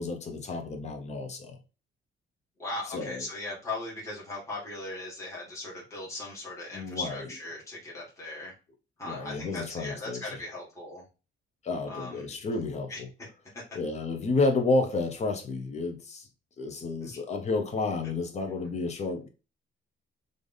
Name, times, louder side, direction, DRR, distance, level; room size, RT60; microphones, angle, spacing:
voice 1, 0.0-1.6 2.9-3.3 6.7-7.2 9.0-10.4 11.6-13.1 13.7-16.3 16.6-19.3, left 3 dB, 35° left, 0.7 m, -31 dB
voice 2, 2.6-8.5 9.0-11.0 11.9-12.3 12.9-13.0 13.5-13.6 17.0-17.2, left 2 dB, 15° left, 1.4 m, -38 dB
3.3 x 2.5 x 3.8 m
cardioid pair, 170°, 21 cm